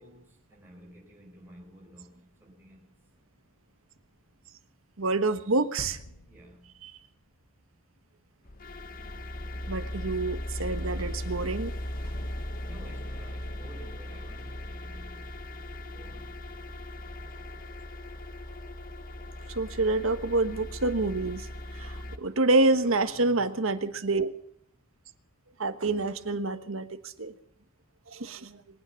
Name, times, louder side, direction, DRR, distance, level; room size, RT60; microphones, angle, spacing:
voice 1, 0.0-2.8 6.3-6.8 12.6-16.4 22.6-23.8 26.0-26.3, equal, 10° right, 5.2 m, -51 dB
voice 2, 5.0-6.0 6.8-6.9 9.7-11.7 19.5-21.5 21.7-24.3 25.6-27.3 28.1-28.6, right 2 dB, 75° right, 1.3 m, -27 dB
sound 1, 5.8-7.7, left 1 dB, 80° left, 1.4 m, -46 dB
sound 2, 8.5-22.2, left 1 dB, 45° left, 0.9 m, -38 dB
sound 3, 9.0-23.3, right 1 dB, 50° right, 5.4 m, -56 dB
24.5 x 9.5 x 5.8 m
head